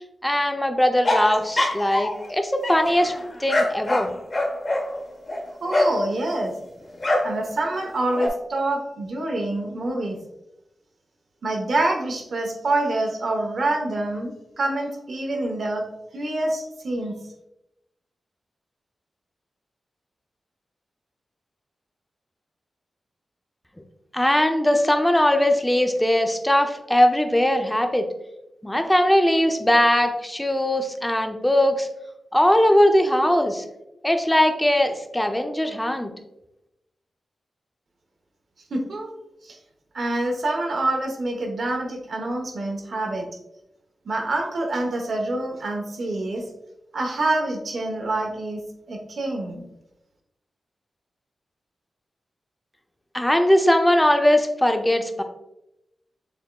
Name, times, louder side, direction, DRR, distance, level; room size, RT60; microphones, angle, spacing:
voice 1, 0.2-3.1 3.4-4.1 24.1-28.0 28.6-31.9 32.3-33.6 34.0-36.1 53.1-55.2, left 1 dB, 5° left, 6 dB, 0.5 m, -20 dB
sound 1, 1.0-2.3 2.6-6.0 7.0-7.4 7.7-8.3, left 1 dB, 40° left, 0.9 m, -24 dB
voice 2, 5.6-6.5 7.2-10.2 11.4-15.9 16.1-17.2 38.7-39.1 39.4-39.6 39.9-43.3 44.0-46.5 46.9-48.6 48.9-49.6, right 2 dB, 60° right, 2 dB, 0.8 m, -26 dB
6.9 x 3.5 x 2.2 m, 0.88 s
wide cardioid pair, 150°, 0 cm